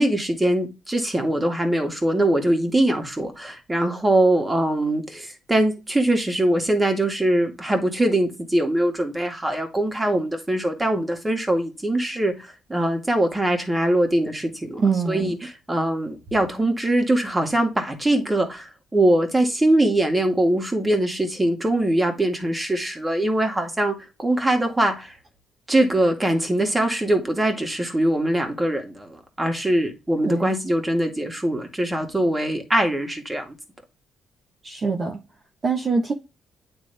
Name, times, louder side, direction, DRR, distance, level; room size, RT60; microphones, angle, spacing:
voice 1, 0.0-25.1 25.7-33.5, right 1 dB, 15° right, 2.0 m, -22 dB
voice 2, 14.8-15.3 30.2-30.5 34.6-35.2 35.6-36.1, right 4 dB, 40° right, 1.1 m, -24 dB
9.3 x 3.5 x 3.4 m
cardioid pair, 90°, 0 cm